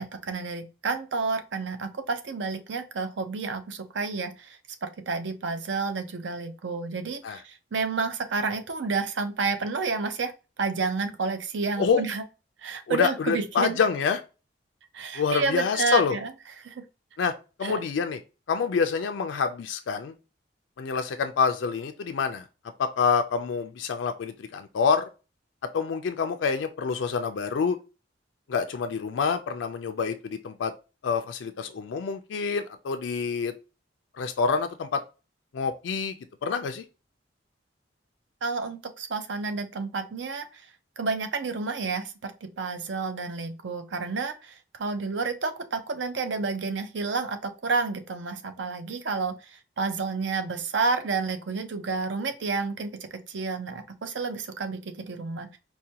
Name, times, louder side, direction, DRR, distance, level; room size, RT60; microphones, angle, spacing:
voice 1, 0.0-10.3 10.6-12.2 12.6-13.8 14.9-16.3 16.6-16.8 17.6-17.8 38.4-40.6 41.0-42.3 42.6-55.6, right 4 dB, 70° right, 8 dB, 0.6 m, -30 dB
voice 2, 12.9-14.2 15.1-16.2 17.2-17.3 17.6-18.2 18.5-20.1 20.8-22.4 22.8-25.1 25.7-27.8 28.5-30.7 31.0-33.5 34.2-35.0 35.5-36.1 36.4-36.8, left 5 dB, 70° left, 7 dB, 0.4 m, -27 dB
4.8 x 2.2 x 2.7 m, 0.31 s
head